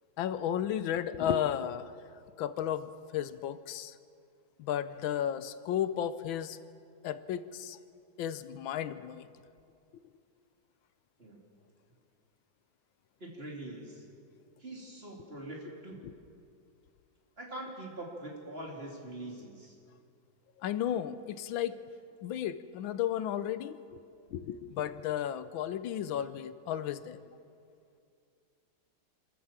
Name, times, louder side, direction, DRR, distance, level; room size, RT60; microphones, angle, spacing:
voice 1, 0.2-1.9 2.4-3.9 4.6-6.6 7.0-7.8 8.2-9.3 16.0-16.1 20.6-21.8 22.2-24.0 24.3-27.2, left 10 dB, 90° left, 13 dB, 1.5 m, -33 dB
voice 2, 13.2-14.0 14.6-16.0 17.4-19.7, right 1 dB, 30° right, -1 dB, 3.3 m, -43 dB
27.0 x 13.5 x 7.4 m, 2.4 s
omnidirectional pair, 2.1 m